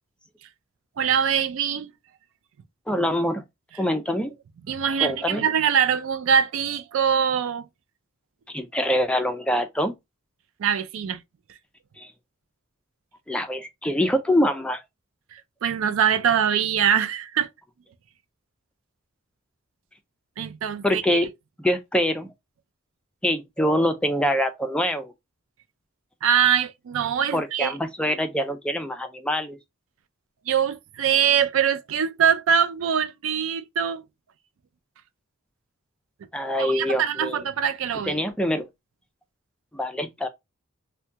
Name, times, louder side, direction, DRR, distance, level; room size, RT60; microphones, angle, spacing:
voice 1, 1.0-1.9 4.7-7.7 10.6-11.2 15.3-17.5 20.4-21.2 26.2-27.7 30.5-34.0 36.6-38.2, right 8 dB, 70° right, 0.4 m, -23 dB
voice 2, 2.9-3.4 3.8-4.3 5.0-5.4 8.5-9.9 12.0-12.1 13.3-14.8 20.8-21.3 21.6-22.3 23.2-25.1 27.3-29.6 36.3-37.4 38.1-38.7 39.7-40.3, equal, 5° left, 0.4 m, -24 dB
2.8 x 2.2 x 3.3 m
head